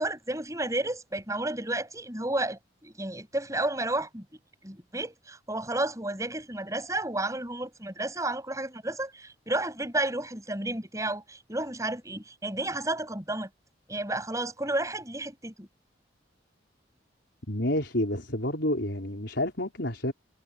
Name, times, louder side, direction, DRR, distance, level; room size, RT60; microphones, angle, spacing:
voice 1, 0.0-4.2 4.6-13.5 13.9-15.7, right 2 dB, 15° right, 7.8 m, -32 dB
voice 2, 17.5-20.1, left 1 dB, 65° left, 4.9 m, -29 dB
head